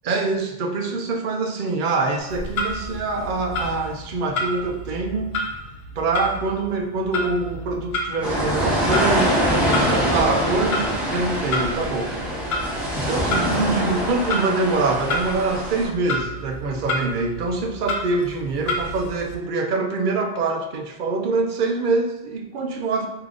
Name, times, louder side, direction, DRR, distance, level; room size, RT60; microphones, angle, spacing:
voice 1, 0.0-5.4 6.0-12.4 13.0-23.1, right 3 dB, 55° right, 2 dB, 0.6 m, -25 dB
Clock, 2.2-19.3, left 1 dB, 65° left, 0.8 m, -31 dB
sound 1, 8.2-15.9, equal, ahead, 0.7 m, -24 dB
3.4 x 2.8 x 3.6 m, 0.93 s
omnidirectional pair, 1.2 m